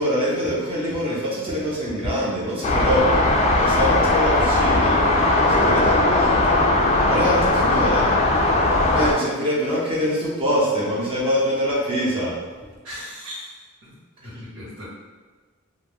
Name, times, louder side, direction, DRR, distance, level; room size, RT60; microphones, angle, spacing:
voice 1, 0.0-5.0 5.5-6.6 7.1-8.1 8.9-12.7 14.3-14.4, equal, 25° right, -6 dB, 0.7 m, -24 dB
sound 1, 2.6-9.1, left 2 dB, 30° left, 0.3 m, -18 dB
voice 2, 12.8-13.5 14.2-14.9, equal, 70° right, -12 dB, 1.2 m, -37 dB
2.5 x 2.2 x 3.3 m, 1.4 s
head